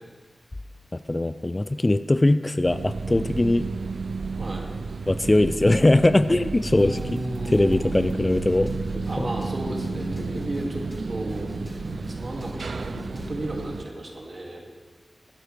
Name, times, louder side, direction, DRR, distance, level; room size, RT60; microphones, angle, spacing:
voice 1, 0.9-3.7 5.1-9.3, left 1 dB, 25° left, 12 dB, 0.3 m, -21 dB
sound 1, 2.6-13.8, right 4 dB, 75° right, 0.4 m, -32 dB
voice 2, 4.4-4.7 6.8-8.1 9.1-11.5 11.8-14.6, right 1 dB, 50° right, 0 dB, 2.3 m, -34 dB
sound 2, 5.7-6.8 7.7-8.8 9.7-10.8 11.6-12.2 12.9-13.5, left 2 dB, 75° left, 1.3 m, -39 dB
sound 3, 6.6-9.2 9.4-9.5 9.8-10.7 10.9-11.0 11.3-13.3, equal, 5° left, 1.9 m, -47 dB
20.0 x 11.0 x 3.4 m, 1.5 s
wide cardioid pair, 85°, 0 cm